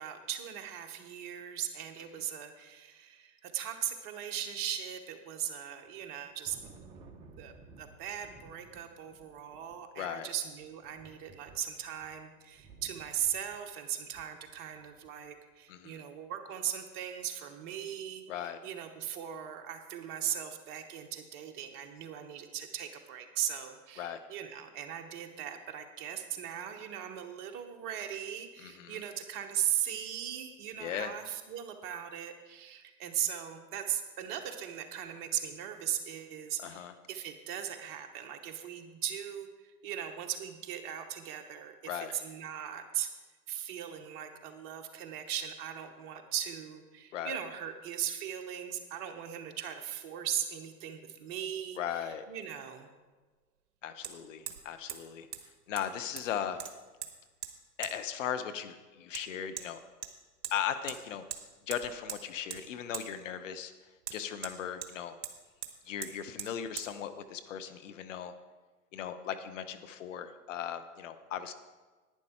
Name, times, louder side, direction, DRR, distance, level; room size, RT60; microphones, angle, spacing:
voice 1, 0.0-6.6 7.4-43.1 43.5-52.9, right 10 dB, 30° right, 6 dB, 1.0 m, -38 dB
Thunder, 5.8-15.3, right 4 dB, 10° right, 0.6 m, -57 dB
voice 2, 10.0-10.3 15.7-16.0 18.3-18.6 24.0-24.2 28.6-29.0 30.8-31.1 36.6-36.9 41.9-42.2 47.1-47.4 51.8-52.3 53.8-55.3 55.7-56.7 57.8-59.8 60.5-61.2 61.7-63.7 64.1-65.2 65.9-68.3 68.9-71.5, left 9 dB, 50° left, 10 dB, 0.9 m, -37 dB
Hammer, 52.1-52.2 54.0-54.1 54.5-54.6 54.9-55.0 55.3-55.4 55.8-56.3 56.6-57.1 57.4-57.5 57.8-57.9 59.1-59.2 59.6-59.7 60.0-60.6 60.9-61.0 61.3-61.4 61.7-62.2 62.5-62.6 62.9-63.1 64.0-64.9 65.2-65.4 65.6-65.7 66.0-66.1 66.4-66.5 66.8-66.9, right 8 dB, 50° right, 1.3 m, -40 dB
11.0 x 9.9 x 4.4 m, 1.3 s
hypercardioid pair, 125°, 47 cm